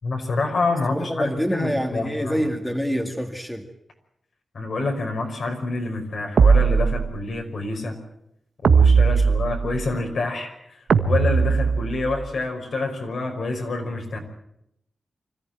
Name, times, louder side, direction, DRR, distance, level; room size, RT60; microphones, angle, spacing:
voice 1, 0.0-2.4 4.5-8.0 8.6-10.8 11.0-14.2, left 3 dB, 65° left, 3 dB, 5.5 m, -27 dB
voice 2, 0.9-3.7, equal, 5° left, 4 dB, 2.2 m, -26 dB
sound 1, 6.4-7.4 8.6-9.9 10.9-12.2, right 5 dB, 80° right, 1.3 m, -18 dB
25.0 x 14.5 x 9.1 m, 0.78 s
wide cardioid pair, 95°, 0 cm